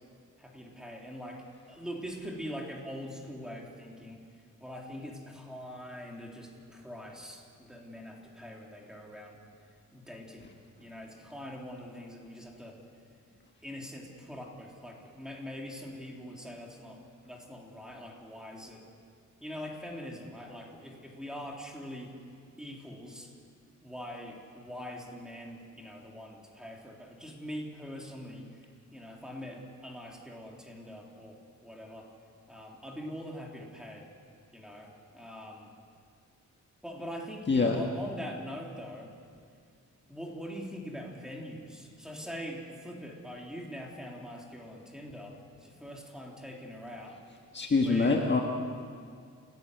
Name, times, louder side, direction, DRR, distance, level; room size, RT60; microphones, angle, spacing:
voice 1, 0.4-4.2 4.6-9.4 9.9-10.5 10.8-12.8 13.6-18.8 19.4-22.1 22.6-23.3 23.8-28.5 28.9-32.1 32.5-34.1 34.5-35.7 36.8-39.1 40.1-47.2 47.7-48.2, equal, ahead, -1 dB, 3.2 m, -43 dB
voice 2, 37.5-37.8 47.5-48.4, left 4 dB, 35° left, 1 dB, 1.6 m, -25 dB
29.0 x 17.0 x 8.0 m, 2.2 s
wide cardioid pair, 155°, 31 cm